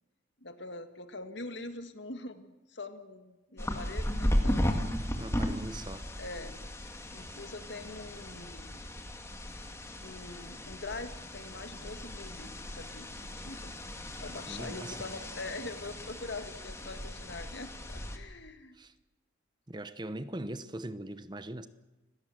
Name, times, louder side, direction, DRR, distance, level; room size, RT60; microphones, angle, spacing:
voice 1, 0.4-4.8 6.2-6.6 7.1-8.8 10.0-13.7 14.2-18.7, left 2 dB, 65° left, 1.9 m, -43 dB
sound 1, 3.6-18.2, equal, 15° left, 2.2 m, -36 dB
voice 2, 5.1-6.1 14.5-15.0 18.7-18.9 19.7-21.7, right 1 dB, 25° right, 1.0 m, -40 dB
29.5 x 17.5 x 7.8 m
head